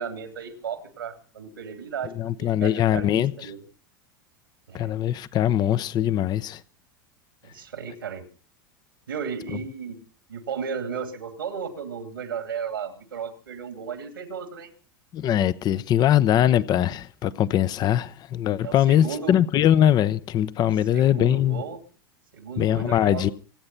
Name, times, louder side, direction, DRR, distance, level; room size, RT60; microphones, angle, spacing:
voice 1, 0.0-2.1 2.4-3.6 4.7-4.9 7.4-8.2 9.1-10.0 10.3-14.7 18.6-19.4 20.9-21.8 22.3-23.3, right 6 dB, 85° right, 2.6 m, -34 dB
voice 2, 2.2-3.3 4.7-6.6 15.1-21.6 22.6-23.3, left 11 dB, 40° left, 0.7 m, -21 dB
25.5 x 8.9 x 5.5 m
hypercardioid pair, 85°, 11 cm